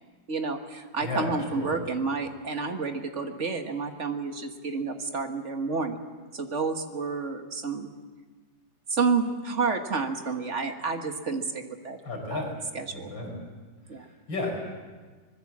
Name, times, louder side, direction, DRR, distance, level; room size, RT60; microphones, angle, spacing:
voice 1, 0.3-6.0 6.3-7.9 8.9-12.0 12.3-12.4 12.7-13.2 13.9-14.1, right 4 dB, 40° right, 5 dB, 1.8 m, -30 dB
voice 2, 1.0-1.8 12.0-12.5 12.9-13.4 13.9-14.5, left 2 dB, 75° left, 1 dB, 6.3 m, -33 dB
25.0 x 20.0 x 7.4 m, 1.4 s
omnidirectional pair, 2.1 m